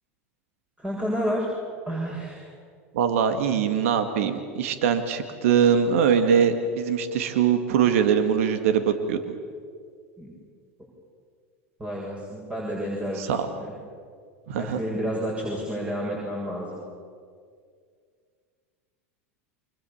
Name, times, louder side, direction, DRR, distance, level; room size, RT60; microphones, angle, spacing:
voice 1, 0.8-1.5 1.9-2.5 10.2-10.3 11.8-13.7 14.5-16.8, equal, 15° right, -3 dB, 7.6 m, -30 dB
voice 2, 2.9-9.2 13.2-13.5 14.5-14.8, right 7 dB, 75° right, 8 dB, 2.1 m, -22 dB
29.0 x 25.5 x 7.3 m, 2.1 s
hypercardioid pair, 95°, 7 cm